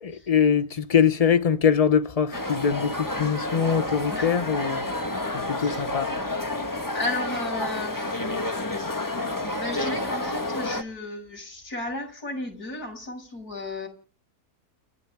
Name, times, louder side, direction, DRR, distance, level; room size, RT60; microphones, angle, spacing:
voice 1, 0.0-4.8 5.3-6.1, left 7 dB, 30° left, 0.8 m, -23 dB
sound 1, 2.3-10.8, left 2 dB, 15° left, 1.3 m, -30 dB
voice 2, 5.6-5.9 6.9-8.2 8.5-8.7 9.6-13.9, left 2 dB, 75° left, 7.1 m, -34 dB
30.0 x 11.5 x 3.6 m
omnidirectional pair, 1.6 m